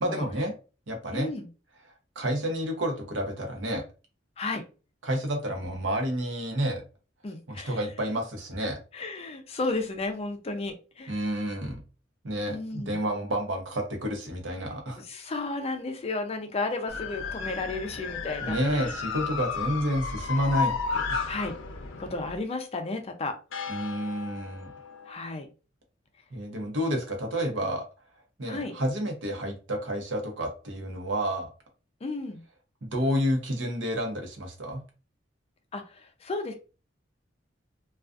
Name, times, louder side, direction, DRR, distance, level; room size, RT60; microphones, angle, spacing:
voice 1, 0.0-0.5 0.9-1.3 2.2-3.8 5.0-6.8 7.5-8.8 11.1-11.8 12.2-15.0 18.4-21.2 23.7-24.7 26.3-27.8 28.4-31.5 32.8-34.8, equal, 75° right, 2 dB, 0.8 m, -30 dB
voice 2, 1.1-1.5 4.4-4.6 7.2-7.8 8.9-11.2 12.5-13.0 15.0-19.0 21.3-21.6 22.0-23.4 25.0-25.5 28.5-28.7 32.0-32.4 35.7-36.5, left 3 dB, 30° left, 5 dB, 0.4 m, -33 dB
sound 1, 16.9-22.4 23.5-25.1, left 5 dB, 85° left, 0.5 m, -33 dB
2.3 x 2.3 x 2.4 m, 0.34 s
head